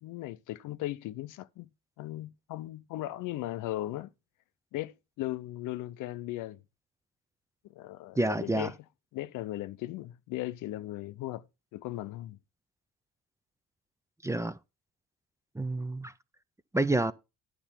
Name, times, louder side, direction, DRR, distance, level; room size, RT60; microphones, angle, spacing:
voice 1, 0.0-1.7 2.0-4.1 4.7-6.6 7.7-8.8 9.1-11.5 11.7-12.4 15.8-15.9, left 15 dB, 90° left, 0.6 m, -37 dB
voice 2, 8.2-8.7 14.2-14.6 15.5-16.1 16.7-17.1, right 2 dB, 10° right, 0.5 m, -28 dB
10.0 x 6.8 x 4.3 m
cardioid pair, 90°, 30 cm